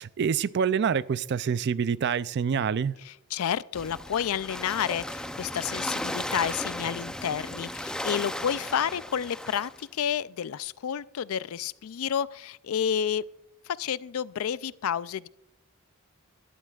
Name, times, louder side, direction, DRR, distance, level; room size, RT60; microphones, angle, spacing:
voice 1, 0.0-3.0, right 7 dB, 50° right, 0.4 m, -26 dB
voice 2, 3.1-13.2 13.7-15.3, left 8 dB, 75° left, 0.4 m, -30 dB
sound 1, 3.7-9.8, left 1 dB, 5° left, 0.5 m, -35 dB
18.5 x 12.5 x 2.4 m
head